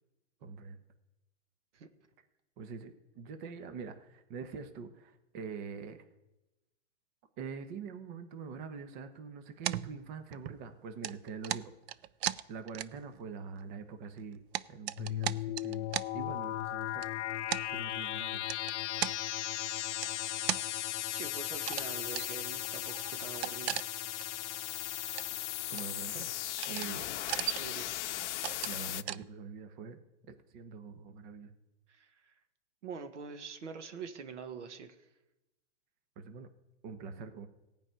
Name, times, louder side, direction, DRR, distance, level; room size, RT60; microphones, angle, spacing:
voice 1, 0.4-0.8 2.6-6.0 7.4-11.7 12.5-14.4 14.7-17.0 17.6-18.4 25.7-26.3 26.7-27.1 28.6-30.0 30.3-31.5 36.2-36.5 36.8-37.5, right 5 dB, 40° right, 8 dB, 1.2 m, -44 dB
sound 1, 9.6-10.7 11.0-13.2 13.6-13.7 14.2-16.1 16.9-17.1 17.5-17.6 18.5-19.2 20.0-20.7 21.6-21.9 22.1-22.3 22.6-22.7 22.9-24.2 24.5-24.6 25.0-25.4 25.8-26.2 26.6-26.9 27.2-27.7 28.2-28.8 29.1-29.3, right 13 dB, 65° right, 0.6 m, -36 dB
sound 2, 15.0-29.0, left 13 dB, 80° left, 0.6 m, -37 dB
voice 2, 21.1-23.9 27.5-28.0 31.9-32.3 32.8-35.1, right 6 dB, 85° right, 8 dB, 1.4 m, -45 dB
15.0 x 5.4 x 9.1 m, 0.99 s
hypercardioid pair, 140°, 35 cm